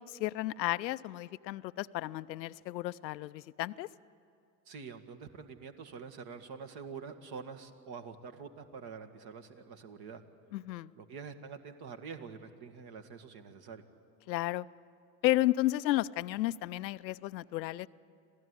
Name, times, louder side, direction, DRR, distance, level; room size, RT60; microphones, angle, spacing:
voice 1, 0.0-3.9 10.5-10.9 14.3-14.7 15.2-17.9, left 16 dB, 85° left, 15 dB, 0.6 m, -32 dB
voice 2, 4.7-10.2 11.0-13.8, right 5 dB, 50° right, 6 dB, 2.0 m, -46 dB
26.0 x 16.0 x 9.8 m, 2.6 s
hypercardioid pair, 90°, 50 cm